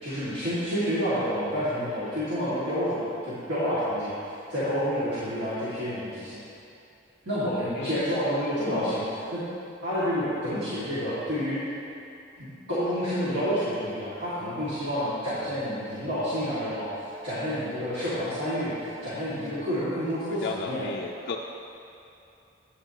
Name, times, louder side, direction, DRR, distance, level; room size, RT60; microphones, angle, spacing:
voice 1, 0.0-6.4 7.2-9.4 9.8-11.7 12.4-20.9, equal, 60° right, -13 dB, 2.2 m, -29 dB
voice 2, 20.3-21.4, left 4 dB, 50° left, -1 dB, 0.4 m, -34 dB
11.5 x 8.5 x 2.9 m, 2.7 s
head